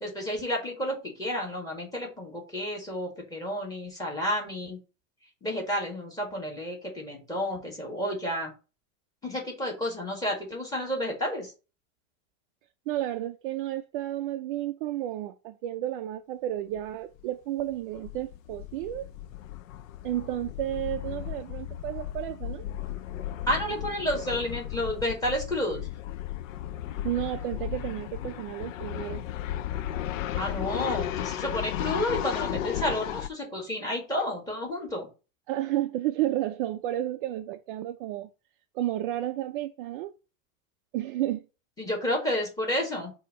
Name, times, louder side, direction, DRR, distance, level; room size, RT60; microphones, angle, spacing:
voice 1, 0.0-4.8 5.4-8.5 9.2-11.5 23.5-25.8 30.4-35.1 41.8-43.1, equal, 10° left, 1.7 m, -31 dB
voice 2, 12.9-19.1 20.0-22.7 27.0-29.3 35.5-38.3 38.7-40.1 40.9-41.5, right 13 dB, 45° right, 0.4 m, -32 dB
sound 1, 16.8-16.9 17.2-17.3 17.6-33.3, left 12 dB, 70° left, 0.6 m, -35 dB
6.6 x 2.8 x 5.1 m
supercardioid pair, 155°, 40 cm